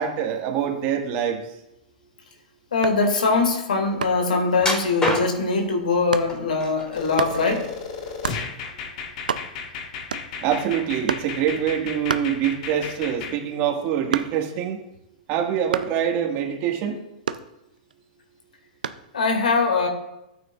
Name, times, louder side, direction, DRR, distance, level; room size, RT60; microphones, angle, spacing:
voice 1, 0.0-1.4 10.4-14.8 15.3-17.0, right 9 dB, 45° right, 2 dB, 1.8 m, -25 dB
voice 2, 2.7-7.7 19.1-19.9, left 4 dB, 85° left, 3 dB, 2.3 m, -22 dB
sound 1, 2.8-3.1 4.0-4.3 5.1-5.3 6.1-6.3 7.2-7.4 8.2-8.5 8.9-9.0 9.2-9.7 10.1-10.5 11.1-11.4 12.1-12.8 13.2-14.6 15.7-16.0 17.3-17.9 18.8-19.1, right 6 dB, 85° right, 0.5 m, -29 dB
sound 2, 4.6-5.6 6.3-7.0 7.4-8.3 8.6-8.8 9.4-9.5, left 2 dB, 20° left, 3.7 m, -27 dB
sound 3, 6.9-13.4, left 5 dB, 60° left, 1.5 m, -34 dB
14.0 x 9.1 x 2.5 m, 0.87 s
hypercardioid pair, 115°, 4 cm